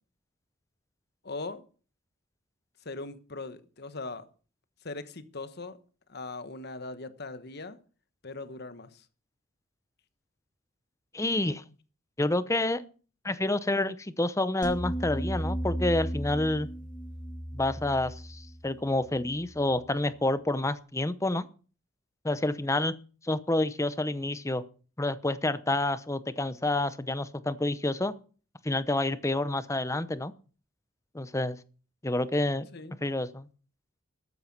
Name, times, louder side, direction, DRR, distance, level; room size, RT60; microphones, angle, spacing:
voice 1, 1.2-1.6 2.8-4.3 4.8-5.8 6.1-7.8 8.2-9.0 32.7-33.0, left 3 dB, 50° left, 1.3 m, -40 dB
voice 2, 11.1-11.6 12.2-12.8 13.2-16.7 17.5-21.5 22.2-22.9 23.2-24.6 25.0-28.1 28.6-30.3 31.1-31.6 32.0-32.7 33.0-33.5, left 2 dB, 15° left, 0.8 m, -28 dB
sound 1, 14.6-19.8, equal, 35° left, 2.6 m, -35 dB
14.0 x 9.4 x 6.0 m
head